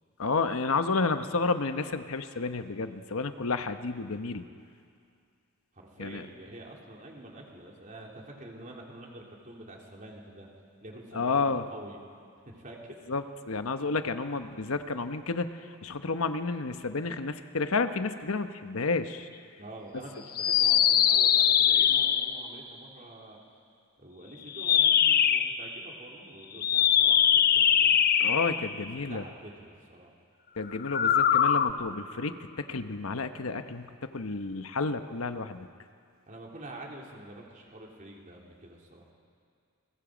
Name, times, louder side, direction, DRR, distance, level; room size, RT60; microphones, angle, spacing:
voice 1, 0.2-4.4 6.0-6.2 11.1-11.6 13.1-19.3 28.2-29.2 30.6-35.7, left 4 dB, 80° left, 9 dB, 1.0 m, -31 dB
voice 2, 5.7-10.5 10.8-12.0 12.4-12.8 19.6-23.4 24.0-28.0 28.9-30.1 36.3-39.1, right 1 dB, 40° right, -1 dB, 3.4 m, -47 dB
sound 1, 20.3-22.5 24.5-25.5 26.6-28.7 30.8-31.7, left 9 dB, 45° left, 0.7 m, -22 dB
29.5 x 22.5 x 5.1 m, 2.3 s
head